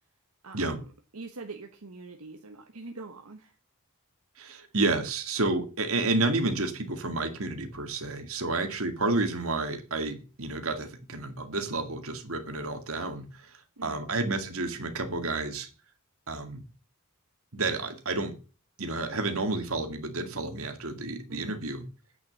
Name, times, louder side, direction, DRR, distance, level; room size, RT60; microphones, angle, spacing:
voice 1, 0.4-3.6 13.8-14.0 21.3-21.6, right 3 dB, 85° right, 1.2 m, -44 dB
voice 2, 4.4-15.7 16.3-16.6 17.5-18.3 18.8-21.8, right 2 dB, 70° right, 2.0 m, -30 dB
9.0 x 6.3 x 7.1 m
head